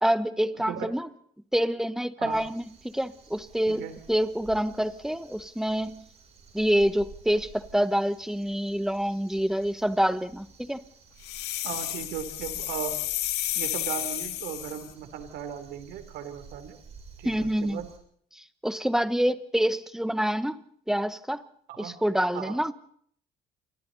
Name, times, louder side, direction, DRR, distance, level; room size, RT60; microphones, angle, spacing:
voice 1, 0.0-1.1 1.5-6.0 6.5-10.8 17.2-17.8 18.3-21.4 21.8-22.7, equal, 5° right, 12 dB, 1.3 m, -27 dB
Crow, 2.3-18.0, right 5 dB, 40° right, 7.4 m, -52 dB
sound 1, 11.2-14.9, left 14 dB, 90° left, 1.9 m, -32 dB
voice 2, 11.6-12.9 13.5-16.8 17.2-17.9 21.7-21.9 22.3-22.5, right 10 dB, 90° right, 8 dB, 3.4 m, -37 dB
28.5 x 25.0 x 4.2 m, 0.63 s
cardioid pair, 110°, 17 cm